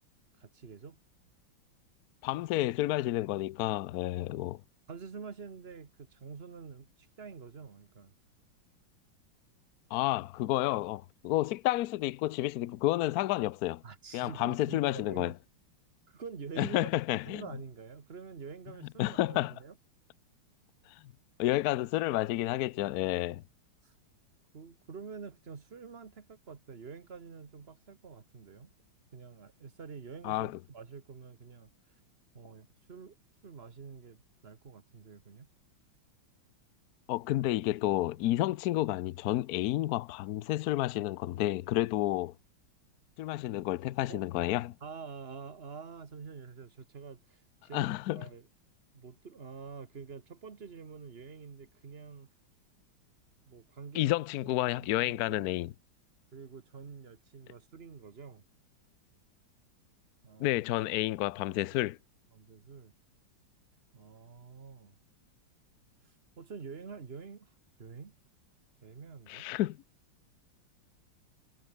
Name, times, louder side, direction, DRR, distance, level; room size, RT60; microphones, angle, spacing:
voice 1, 0.4-1.0 4.9-8.1 13.8-15.4 16.1-19.8 23.8-23.9 24.5-28.7 29.1-31.7 32.3-33.2 33.4-35.5 44.1-44.2 44.8-48.5 48.9-52.3 53.4-54.1 54.4-55.5 56.3-58.4 60.2-60.6 61.0-61.1 62.3-62.9 63.9-65.0 66.0-67.5 67.8-68.2 68.8-69.5, right 5 dB, 30° right, 1.5 m, -47 dB
voice 2, 2.2-4.6 9.9-13.8 14.1-15.3 16.6-17.4 19.0-19.5 21.4-23.4 30.2-30.5 37.1-42.3 43.2-44.7 47.7-48.2 53.9-55.7 60.4-62.0 69.3-69.8, left 16 dB, 75° left, 0.8 m, -30 dB
omnidirectional pair, 2.3 m